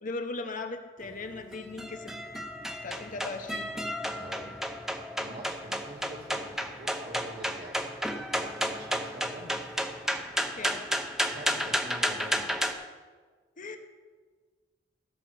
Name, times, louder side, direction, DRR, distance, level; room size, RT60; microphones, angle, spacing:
voice 1, 0.0-2.1 2.8-3.7 10.6-10.8 13.6-13.8, left 3 dB, 45° left, 6 dB, 0.8 m, -38 dB
sound 1, 1.0-12.7, equal, 5° right, 0.6 m, -32 dB
voice 2, 4.2-4.6 5.2-7.8 8.3-9.5 11.2-12.6, right 1 dB, 60° right, -1 dB, 2.2 m, -46 dB
16.0 x 6.1 x 4.6 m, 1.5 s
head